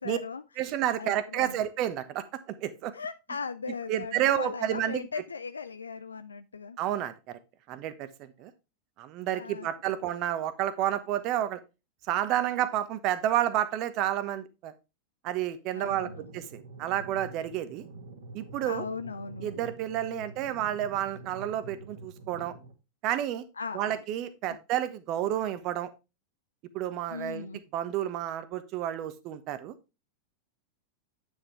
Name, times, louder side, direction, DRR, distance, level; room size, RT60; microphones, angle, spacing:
voice 1, 0.0-0.4 1.0-1.6 2.9-6.8 9.3-9.7 15.7-16.2 18.6-19.7 20.1-20.2 23.6-24.0 27.1-27.6, left 5 dB, 75° left, 0.4 m, -38 dB
voice 2, 0.6-2.2 2.6-2.9 3.9-5.1 6.8-7.4 7.7-8.5 9.0-11.6 12.1-14.7 15.2-17.8 18.3-18.8 19.4-22.5 23.0-23.4 23.7-25.9 26.7-29.7, right 12 dB, 40° right, 1.1 m, -30 dB
sound 1, 15.8-22.7, right 3 dB, 60° right, 1.8 m, -47 dB
9.3 x 6.5 x 3.4 m
figure-of-eight pair, 90°, 0 cm